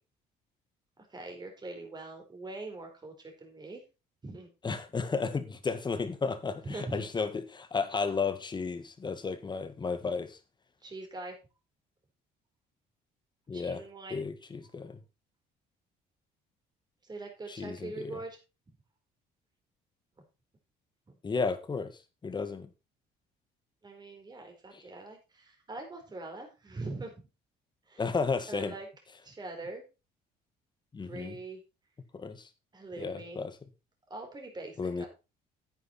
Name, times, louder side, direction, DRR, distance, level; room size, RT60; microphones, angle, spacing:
voice 1, 1.1-3.8 4.2-4.5 6.7-7.1 10.8-11.4 13.5-14.2 17.0-18.4 23.8-27.2 27.9-28.0 28.5-28.9 29.2-29.8 31.1-31.6 32.7-33.4 34.1-35.1, right 2 dB, 25° right, 4.6 m, -42 dB
voice 2, 4.6-10.4 13.5-13.8 14.1-15.0 17.5-18.1 21.2-21.9 22.2-22.7 24.7-24.8 28.0-28.7 30.9-31.4 32.1-32.5 33.0-33.5 34.8-35.0, left 4 dB, 25° left, 1.7 m, -33 dB
10.0 x 9.5 x 4.3 m
cardioid pair, 110°, 17 cm